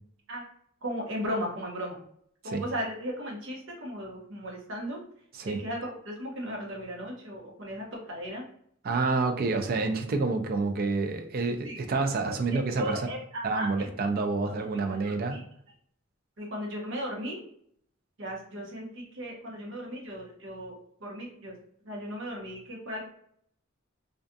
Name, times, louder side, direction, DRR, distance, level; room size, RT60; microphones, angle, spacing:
voice 1, 0.8-2.0 2.4-8.5 9.1-9.2 11.6-11.8 12.3-14.0 14.7-15.4 16.4-17.4 18.2-21.5 21.8-23.1, equal, 65° right, -2 dB, 0.9 m, -36 dB
voice 2, 8.9-12.9 13.4-15.4, right 3 dB, 45° right, 6 dB, 0.4 m, -28 dB
2.4 x 2.3 x 2.5 m, 0.67 s
head